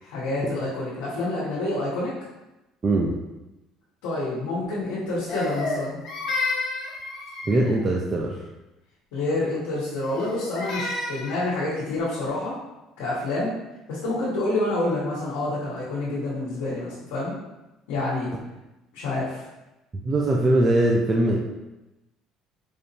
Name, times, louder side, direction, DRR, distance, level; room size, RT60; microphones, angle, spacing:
voice 1, 0.0-2.1 4.0-6.0 9.1-12.5 13.0-13.5 13.9-17.3 17.9-18.3 18.9-19.4, left 2 dB, 85° left, -7 dB, 1.1 m, -28 dB
voice 2, 2.8-3.1 7.5-8.4 20.0-21.4, right 1 dB, 30° right, -2 dB, 0.5 m, -21 dB
Crying sobbing, 5.3-7.8 10.0-11.5, left 3 dB, 55° left, 1.1 m, -30 dB
4.9 x 2.5 x 2.9 m, 1.0 s
supercardioid pair, 85°, 0 cm